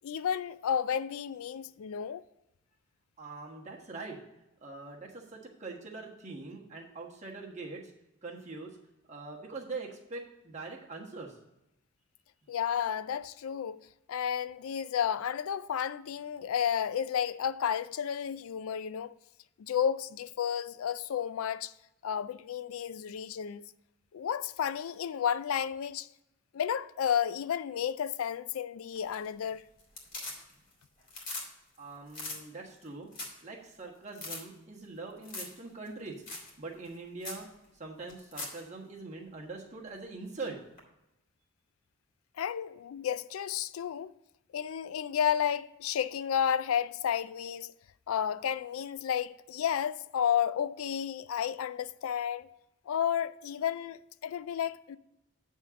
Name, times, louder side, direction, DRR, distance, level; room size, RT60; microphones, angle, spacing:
voice 1, 0.0-2.2 12.5-19.2 19.6-21.7 22.0-23.6 24.1-26.1 26.5-29.6 42.4-44.1 44.5-47.7 48.1-52.5 52.9-55.0, left 8 dB, 85° left, 0.4 m, -32 dB
voice 2, 3.2-4.2 4.6-7.9 8.2-8.8 9.1-11.4 31.8-33.1 33.4-36.1 36.6-37.5 37.7-40.6, right 3 dB, 35° right, 1.4 m, -43 dB
sound 1, 28.9-29.5 29.8-30.7 31.0-31.5 31.7-31.8 32.1-32.4 32.8-32.9 33.1-33.4 33.7-33.8 34.1-34.4 35.2-35.6 35.8-35.9 36.3-36.5 36.8-36.9 37.2-37.4 38.1-38.6 40.8-40.9, left 2 dB, 40° left, 2.3 m, -40 dB
9.3 x 3.7 x 6.9 m
head